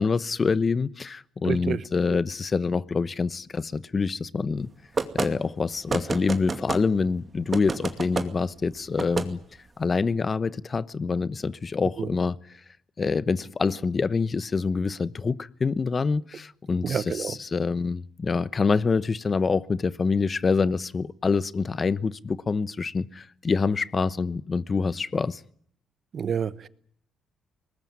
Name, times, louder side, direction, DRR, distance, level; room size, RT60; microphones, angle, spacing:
voice 1, 0.0-4.7 5.1-9.4 9.8-12.4 13.0-25.4, left 4 dB, 35° left, 1.0 m, -26 dB
voice 2, 1.4-1.8 2.1-2.2 12.0-12.1 16.8-17.4 26.1-26.7, right 7 dB, 50° right, 1.1 m, -29 dB
sound 1, 5.0-5.3 5.9-6.8 7.5-8.3 9.0-9.3, right 4 dB, 35° right, 2.4 m, -28 dB
23.0 x 20.0 x 9.6 m
cardioid pair, 90°, 0 cm